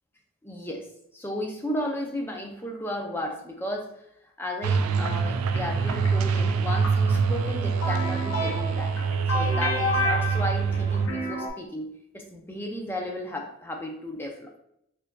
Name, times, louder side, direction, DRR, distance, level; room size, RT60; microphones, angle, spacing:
voice 1, 0.4-3.9 4.4-8.9 9.3-9.8 10.0-14.5, left 1 dB, 10° left, 2 dB, 0.4 m, -34 dB
sound 1, 4.6-11.1, right 5 dB, 90° right, 0.3 m, -25 dB
sound 2, 5.1-11.5, left 1 dB, 80° left, 0.7 m, -30 dB
4.5 x 2.5 x 2.2 m, 0.75 s
head